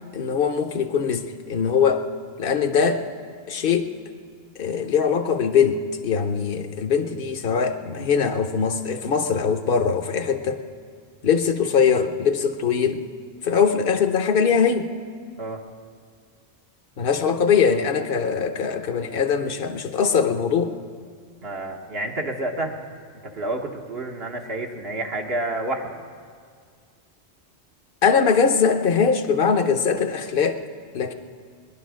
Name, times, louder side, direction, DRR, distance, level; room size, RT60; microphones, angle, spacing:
voice 1, 0.1-2.1 2.4-3.0 3.5-3.9 4.6-10.6 11.2-13.0 13.4-14.9 17.0-20.7 28.0-30.6 30.9-31.1, left 6 dB, 55° left, 8 dB, 1.0 m, -21 dB
voice 2, 21.4-22.8 23.2-26.0, right 2 dB, 65° right, 1 dB, 1.4 m, -29 dB
19.0 x 11.0 x 6.3 m, 2.1 s
omnidirectional pair, 1.1 m